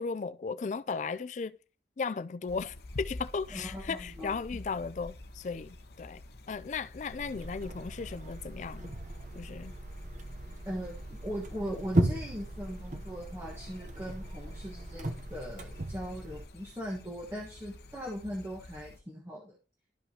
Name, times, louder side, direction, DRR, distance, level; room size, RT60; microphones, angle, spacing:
voice 1, 0.0-1.6 2.0-6.2 6.5-8.9 9.3-9.7, left 5 dB, 40° left, 0.3 m, -36 dB
sound 1, 2.5-19.0, left 1 dB, 60° left, 0.8 m, -49 dB
voice 2, 3.5-4.4 10.6-19.6, equal, 15° right, 1.3 m, -40 dB
sound 2, 7.1-16.5, right 1 dB, 45° right, 0.8 m, -36 dB
12.5 x 5.5 x 2.8 m
head